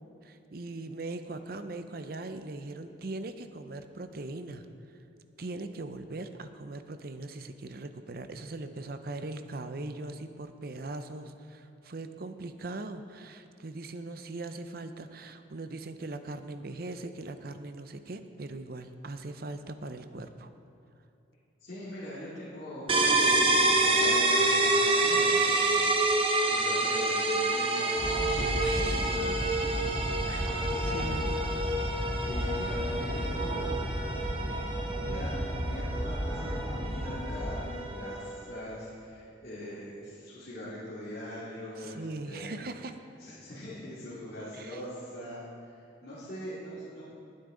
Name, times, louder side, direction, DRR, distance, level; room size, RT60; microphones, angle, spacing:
voice 1, 0.2-4.7 5.4-20.5 28.4-29.6 30.2-31.4 41.8-43.0 44.5-44.8, right 2 dB, 50° right, 9 dB, 0.6 m, -40 dB
voice 2, 21.6-25.9 26.5-28.2 28.6-29.1 29.5-29.8 30.4-31.4 32.2-33.8 34.1-42.5 43.2-45.7 46.0-47.0, equal, 55° left, -12 dB, 2.6 m, -42 dB
sound 1, 22.9-38.5, right 2 dB, 30° right, 0.9 m, -28 dB
sound 2, 28.0-37.6, equal, 10° left, 1.6 m, -33 dB
20.0 x 8.5 x 3.9 m, 2.6 s
head